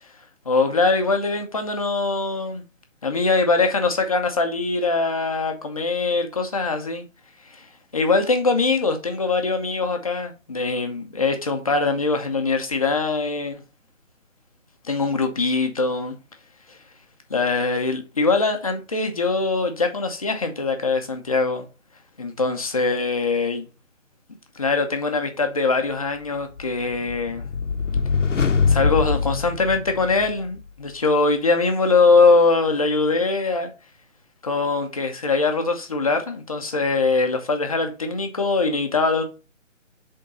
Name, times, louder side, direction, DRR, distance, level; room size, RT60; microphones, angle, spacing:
voice 1, 0.4-2.6 3.0-7.0 7.5-7.7 7.9-13.6 14.8-16.2 17.3-21.6 22.2-23.7 24.5-27.5 28.7-33.7 34.4-39.2, left 3 dB, 25° left, 0.8 m, -22 dB
sound 1, 26.6-30.4, left 5 dB, 70° left, 1.0 m, -23 dB
8.0 x 3.8 x 4.1 m
figure-of-eight pair, 165°, 39 cm